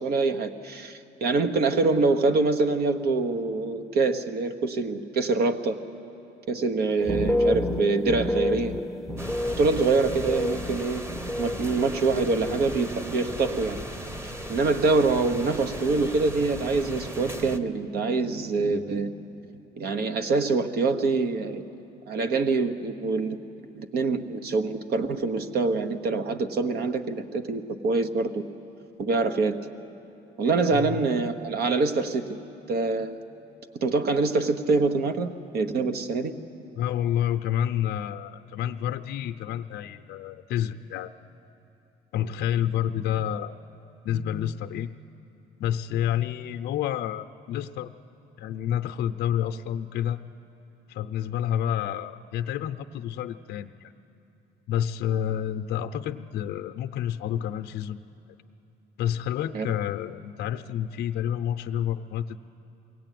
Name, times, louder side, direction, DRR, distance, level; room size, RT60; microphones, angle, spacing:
voice 1, 0.0-5.8 6.5-8.8 9.6-11.0 11.4-13.8 14.2-19.1 19.8-21.6 22.1-23.4 23.7-28.4 29.0-29.6 30.4-32.4 32.7-33.2 33.8-36.3 59.5-59.7, right 3 dB, 65° right, 8 dB, 1.2 m, -25 dB
sound 1, 7.0-12.8 13.1-13.8 14.1-14.5, left 1 dB, ahead, 0.7 m, -30 dB
sound 2, 9.2-17.6, right 1 dB, 15° right, 1.1 m, -38 dB
voice 2, 36.7-41.1 42.1-43.5 44.0-44.9 45.6-47.9 48.4-50.2 50.9-53.9 54.7-58.0 59.0-62.4, left 10 dB, 75° left, 6 dB, 0.6 m, -29 dB
22.5 x 17.5 x 9.2 m, 2.9 s
cardioid pair, 110°, 17 cm